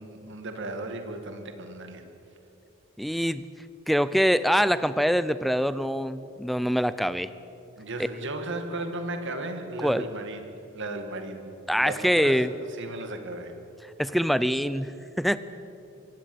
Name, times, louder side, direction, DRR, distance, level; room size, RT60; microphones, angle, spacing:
voice 1, 0.0-2.1 7.8-10.5 10.7-13.5, right 2 dB, 60° right, 6 dB, 2.1 m, -35 dB
voice 2, 3.0-3.4 3.9-7.3 9.8-10.0 11.7-12.5 14.0-15.4, equal, ahead, 15 dB, 0.5 m, -24 dB
24.5 x 16.0 x 7.9 m, 2.8 s
head